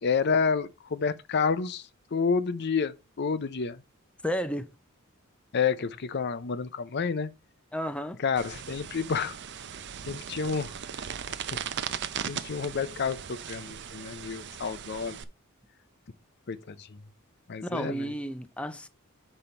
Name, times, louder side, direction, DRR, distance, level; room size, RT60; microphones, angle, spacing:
voice 1, 0.0-1.8 2.1-3.8 5.5-7.3 8.2-9.4 10.1-10.7 12.3-15.2 16.5-16.9 17.5-18.1, left 5 dB, 50° left, 0.6 m, -29 dB
voice 2, 4.2-4.7 7.7-8.2 17.6-18.9, equal, 5° left, 0.6 m, -32 dB
sound 1, 8.4-15.2, right 8 dB, 55° right, 0.6 m, -38 dB
6.9 x 5.5 x 4.4 m
head